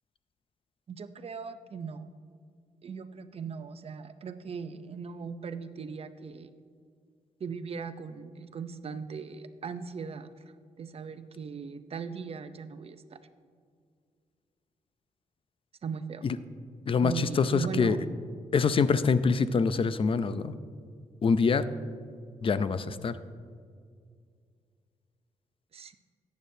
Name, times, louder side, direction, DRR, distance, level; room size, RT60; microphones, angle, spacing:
voice 1, 0.9-2.1 2.8-6.5 7.4-10.3 10.8-13.2 15.8-16.2 17.0-18.0 25.7-25.9, right 6 dB, 50° right, 10 dB, 0.6 m, -38 dB
voice 2, 16.9-18.0 18.5-20.6 21.2-21.6 22.4-23.2, left 5 dB, 45° left, 13 dB, 0.5 m, -25 dB
14.0 x 9.4 x 2.7 m, 2.2 s
cardioid pair, 75°, 13 cm